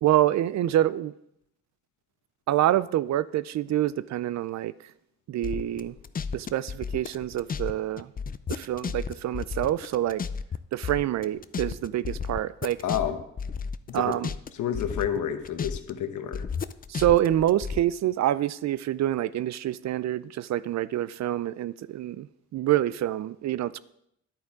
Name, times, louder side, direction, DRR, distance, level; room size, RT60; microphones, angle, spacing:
voice 1, 0.0-1.1 2.5-4.7 5.3-5.9 6.3-8.1 8.5-10.2 10.7-12.8 13.9-14.3 16.9-22.3 22.5-23.8, right 13 dB, 65° right, 0.5 m, -26 dB
sound 1, 5.4-7.7 8.0-10.6 10.8-14.5 14.7-15.9 16.3-17.8, left 6 dB, 30° left, 0.5 m, -33 dB
voice 2, 12.8-13.2 13.9-14.2 14.5-16.5, left 9 dB, 85° left, 1.1 m, -29 dB
10.5 x 8.9 x 3.6 m
cardioid pair, 80°, 30 cm